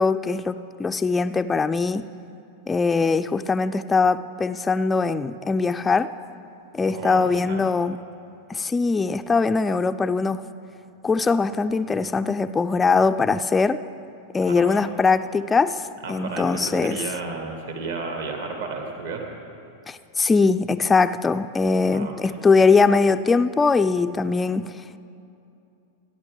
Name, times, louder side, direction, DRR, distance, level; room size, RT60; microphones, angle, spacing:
voice 1, 0.0-2.1 2.7-6.1 6.7-8.0 8.5-10.5 11.0-13.8 14.3-17.0 19.9-25.0, left 4 dB, 15° left, 9 dB, 0.3 m, -21 dB
voice 2, 6.9-7.6 14.5-14.8 16.0-19.3 21.9-22.4, right 3 dB, 60° right, 2 dB, 2.0 m, -33 dB
28.0 x 11.0 x 3.6 m, 2.6 s
figure-of-eight pair, 90°, 0 cm